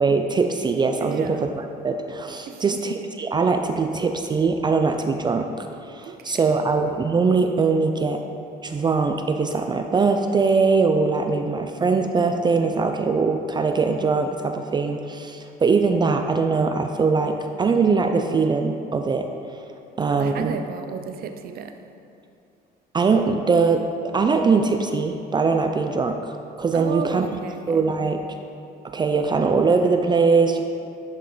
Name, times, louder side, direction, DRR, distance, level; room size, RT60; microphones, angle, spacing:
voice 1, 0.0-1.4 1.8-8.2 8.6-19.3 19.5-19.6 20.0-20.6 22.9-23.8 24.1-27.3 27.7-28.3 28.9-30.6, right 4 dB, 25° right, 5 dB, 0.4 m, -21 dB
voice 2, 1.0-1.5 2.5-2.9 6.0-6.7 20.1-21.8 26.7-27.9, right 6 dB, 60° right, 7 dB, 0.7 m, -34 dB
11.0 x 5.3 x 3.9 m, 2.6 s
cardioid pair, 110°, 17 cm